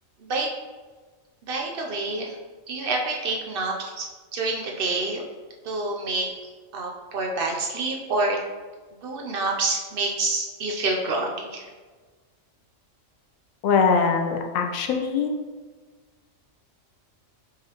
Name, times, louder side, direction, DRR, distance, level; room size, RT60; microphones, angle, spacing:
voice 1, 0.2-0.5 1.5-2.4 2.7-4.1 4.3-5.2 5.6-6.3 6.7-8.4 9.0-11.6, right 3 dB, 55° right, 0 dB, 0.7 m, -27 dB
voice 2, 13.6-15.3, left 5 dB, 80° left, 4 dB, 1.0 m, -22 dB
4.8 x 3.6 x 2.9 m, 1.4 s
omnidirectional pair, 1.4 m